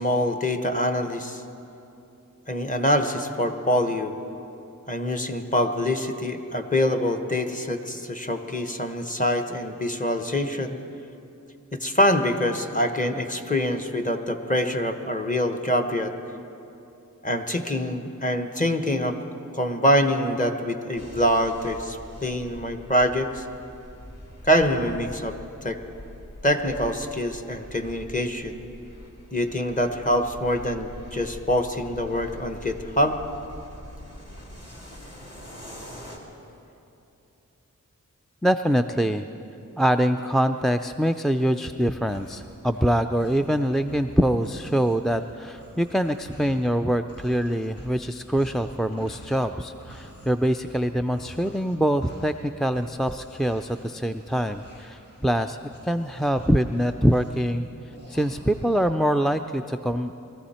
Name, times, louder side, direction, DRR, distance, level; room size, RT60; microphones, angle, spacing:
voice 1, 0.0-1.4 2.5-4.1 4.9-10.8 11.7-16.1 17.2-19.2 19.5-23.4 24.4-25.8 26.4-28.6 29.3-33.2, equal, 25° left, 6 dB, 1.1 m, -25 dB
sound 1, 21.0-36.2, left 1 dB, 50° left, 2.7 m, -44 dB
voice 2, 38.4-39.3 39.8-55.6 55.8-57.7 58.1-60.1, equal, ahead, 8 dB, 0.3 m, -24 dB
sound 2, 41.7-46.7 47.1-58.8, right 1 dB, 85° left, 2.9 m, -48 dB
21.5 x 14.0 x 4.3 m, 2.8 s
wide cardioid pair, 50°, 33 cm